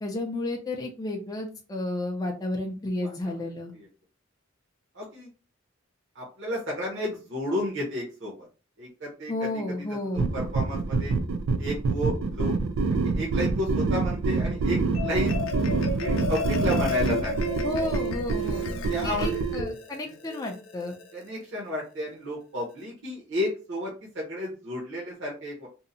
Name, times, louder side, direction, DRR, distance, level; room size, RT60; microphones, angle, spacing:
voice 1, 0.0-3.7 9.3-10.3 17.6-18.6 19.0-21.0, left 2 dB, 20° left, 1 dB, 0.4 m, -32 dB
voice 2, 3.0-3.4 4.9-5.3 6.1-8.5 8.8-9.3 10.1-11.1 11.6-12.5 13.0-15.3 16.0-17.4 18.9-19.3 21.1-25.7, left 1 dB, 60° right, -3 dB, 0.8 m, -32 dB
sound 1, 10.2-19.7, right 3 dB, 80° right, 0.3 m, -27 dB
Marimba xylophone, 14.7-21.3, left 4 dB, 75° left, 0.5 m, -34 dB
2.7 x 2.0 x 2.6 m, 0.35 s
head